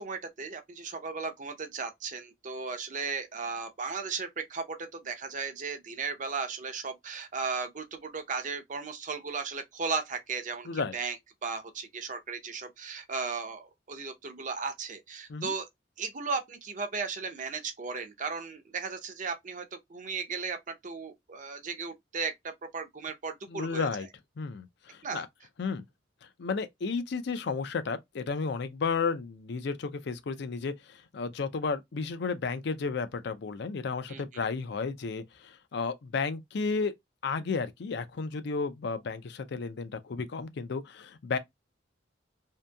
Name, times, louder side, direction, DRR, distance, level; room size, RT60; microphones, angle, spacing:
voice 1, 0.0-11.2 11.4-15.7 16.0-23.9 25.0-25.2 34.1-34.4, right 5 dB, 45° right, 0.6 m, -36 dB
voice 2, 23.5-24.1 24.4-25.3 25.6-25.8 26.4-36.9 37.2-41.4, left 4 dB, 65° left, 0.5 m, -33 dB
2.7 x 2.6 x 2.2 m
head